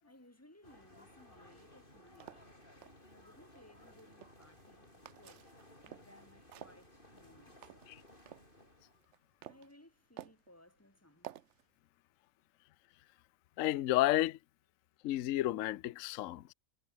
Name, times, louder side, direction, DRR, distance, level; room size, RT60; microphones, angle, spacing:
voice 1, 0.0-2.5 3.1-5.5 5.9-7.7 9.4-11.5, left 1 dB, 10° left, 3.8 m, -62 dB
sound 1, 0.6-9.0, left 1 dB, 30° left, 7.6 m, -59 dB
sound 2, 1.8-2.9 3.8-4.7 5.0-6.2 6.5-8.5 8.9-9.7 10.2-10.5 11.2-11.6, right 11 dB, 65° right, 0.7 m, -52 dB
voice 2, 13.6-14.4 15.0-16.5, left 15 dB, 65° left, 0.8 m, -31 dB
omnidirectional pair, 1.9 m